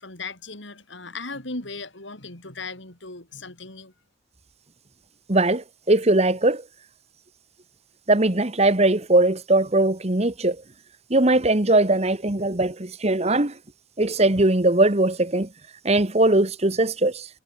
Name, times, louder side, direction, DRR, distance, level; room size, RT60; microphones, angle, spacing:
voice 1, 0.0-3.9, left 3 dB, 70° left, 4.9 m, -37 dB
voice 2, 5.3-6.6 8.1-10.6 11.1-13.5 14.0-15.5 15.8-17.3, right 2 dB, 35° right, 1.6 m, -20 dB
head